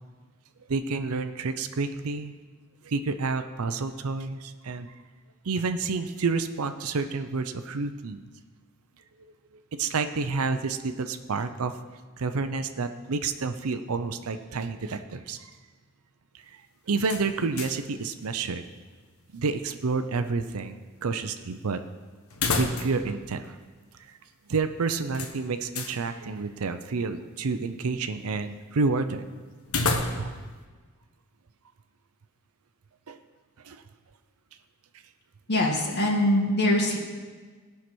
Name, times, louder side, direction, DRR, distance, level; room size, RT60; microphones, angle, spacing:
voice 1, 0.7-2.3 2.8-4.9 5.4-8.2 9.8-11.8 12.2-15.5 16.9-18.6 19.3-21.8 22.6-23.6 24.1-24.2 24.5-29.3 30.2-30.3 33.1-33.2 33.6-33.8, right 4 dB, 75° right, 9 dB, 0.6 m, -29 dB
sound 1, 17.0-17.9 18.2-18.3 22.3-23.1 23.4-23.5 25.1-26.0 29.6-30.5, left 3 dB, 70° left, 1.1 m, -30 dB
voice 2, 35.5-37.0, left 1 dB, 50° left, 0 dB, 2.0 m, -23 dB
17.5 x 5.8 x 6.1 m, 1.4 s
head